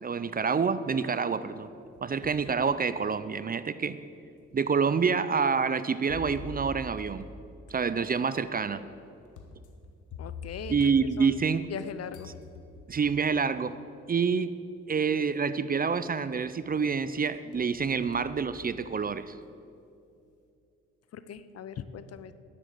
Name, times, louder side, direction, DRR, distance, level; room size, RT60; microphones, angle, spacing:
voice 1, 0.0-1.7 2.0-4.0 4.5-7.3 7.7-8.9 10.7-11.7 12.9-13.7 14.1-14.5 14.9-19.3, right 5 dB, 30° right, 14 dB, 0.5 m, -27 dB
sound 1, 1.6-2.5 3.1-3.2 4.1-4.2 6.1-11.8 12.1-13.1 14.3-14.4 14.9-15.3 15.7-16.5 16.9-19.2, left 2 dB, 75° left, 1.5 m, -46 dB
voice 2, 10.2-10.9 11.2-11.4 11.7-12.3 21.1-22.3, left 7 dB, 55° left, 13 dB, 0.7 m, -40 dB
12.0 x 7.9 x 7.7 m, 2.6 s
supercardioid pair, 70°, 30 cm